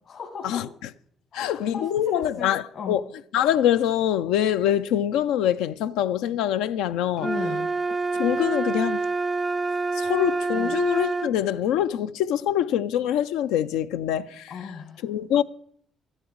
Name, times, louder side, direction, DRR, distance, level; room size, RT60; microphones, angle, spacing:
voice 1, 0.1-0.7 1.3-3.0 7.2-7.7 10.5-10.7 14.5-15.1, left 5 dB, 65° left, 2.0 m, -36 dB
voice 2, 1.3-3.0 3.3-7.3 8.1-9.1 10.0-14.5 15.0-15.4, left 10 dB, 90° left, 0.4 m, -24 dB
sound 1, 7.2-11.3, right 3 dB, 20° right, 0.4 m, -27 dB
13.0 x 11.0 x 4.6 m
supercardioid pair, 75°, 0 cm